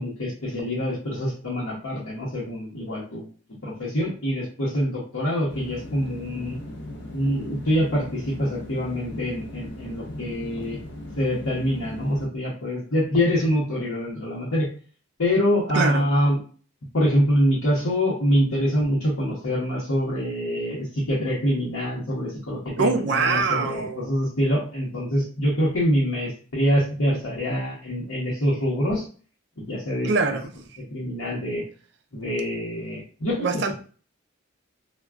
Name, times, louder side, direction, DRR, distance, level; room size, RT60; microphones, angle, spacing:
voice 1, 0.0-3.2 3.6-6.6 7.1-10.8 11.2-14.7 15.2-16.4 16.9-29.0 29.6-30.1 30.9-31.6 32.1-33.4, equal, 90° left, 0.9 m, -25 dB
sound 1, 5.5-12.3, left 1 dB, 55° left, 0.4 m, -38 dB
voice 2, 15.7-16.0 22.8-24.1 30.0-30.5 33.4-33.7, right 4 dB, 55° right, 0.4 m, -23 dB
3.4 x 2.2 x 2.3 m
head